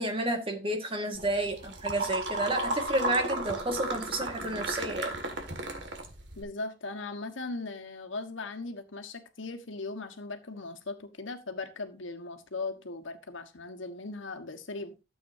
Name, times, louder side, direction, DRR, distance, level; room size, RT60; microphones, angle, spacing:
voice 1, 0.0-5.2, right 1 dB, 30° right, 1.7 m, -31 dB
sound 1, 1.1-6.4, right 2 dB, 65° right, 2.0 m, -34 dB
voice 2, 6.4-15.0, left 3 dB, 90° left, 1.4 m, -38 dB
13.0 x 7.8 x 2.7 m
head